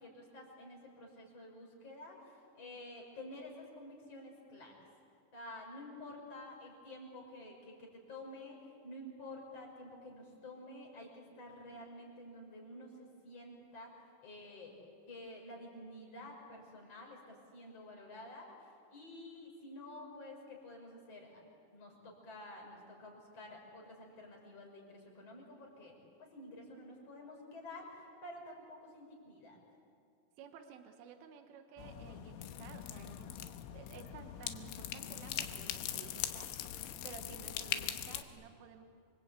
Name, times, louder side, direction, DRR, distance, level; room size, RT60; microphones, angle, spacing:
voice 1, 0.0-4.7 5.3-8.6 8.8-13.9 14.2-14.8 15.1-21.4 21.7-25.9 26.3-29.6 37.0-37.4, left 1 dB, 30° left, 0 dB, 6.3 m, -50 dB
voice 2, 30.4-33.5 33.7-38.8, right 7 dB, 85° right, 5 dB, 4.0 m, -54 dB
sound 1, 31.8-38.2, left 11 dB, 85° left, 3.5 m, -41 dB
28.5 x 25.0 x 8.4 m, 2.3 s
omnidirectional pair, 5.5 m